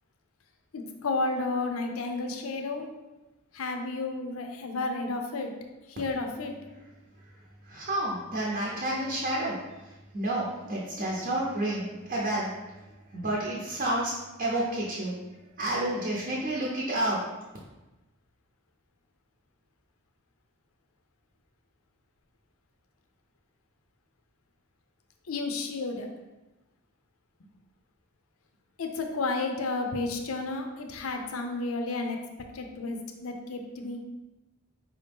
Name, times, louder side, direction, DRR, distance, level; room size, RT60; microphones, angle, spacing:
voice 1, 0.7-2.9 3.5-5.5 5.9-6.5 25.3-26.1 28.8-32.2 32.5-34.0, left 3 dB, 85° left, 4 dB, 0.6 m, -32 dB
voice 2, 7.2-14.1 14.4-17.4, right 1 dB, 45° right, -4 dB, 0.7 m, -31 dB
4.9 x 2.7 x 3.5 m, 1.1 s
head